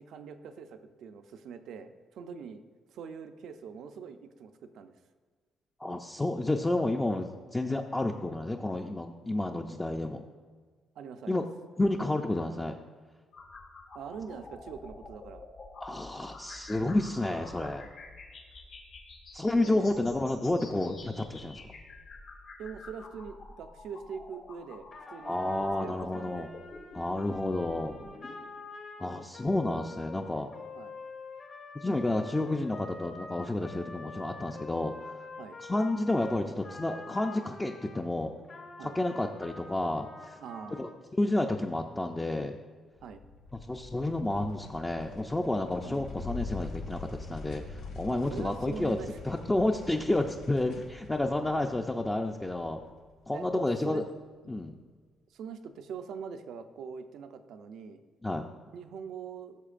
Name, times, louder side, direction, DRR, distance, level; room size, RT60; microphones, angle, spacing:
voice 1, 0.0-2.6 2.9-4.9 11.0-11.4 13.9-15.4 19.6-20.0 22.6-26.5 30.7-31.0 35.4-35.6 38.8-39.0 40.4-40.9 43.0-43.2 45.8-46.1 48.1-49.3 51.4-51.5 53.3-54.0 54.4-54.5 55.3-58.0 58.7-59.6, right 6 dB, 75° right, 8 dB, 0.5 m, -43 dB
voice 2, 5.8-10.2 11.3-11.4 11.8-12.8 15.8-17.8 19.3-21.7 25.2-26.5 26.9-28.0 29.0-30.5 31.8-35.2 35.6-38.3 38.8-40.4 40.8-40.9 41.2-42.6 43.7-49.0 49.2-52.8 53.3-54.0 54.5-54.7 58.2-58.4, left 2 dB, 15° left, 2 dB, 0.5 m, -30 dB
sound 1, 13.3-28.3, left 3 dB, 70° left, 1.7 m, -49 dB
Trumpet, 24.9-38.0 38.4-41.0, left 3 dB, 55° left, 1.4 m, -46 dB
sound 2, 43.0-53.6, left 3 dB, 85° left, 1.2 m, -44 dB
13.5 x 6.4 x 2.5 m, 1.5 s
cardioid pair, 90°, 0 cm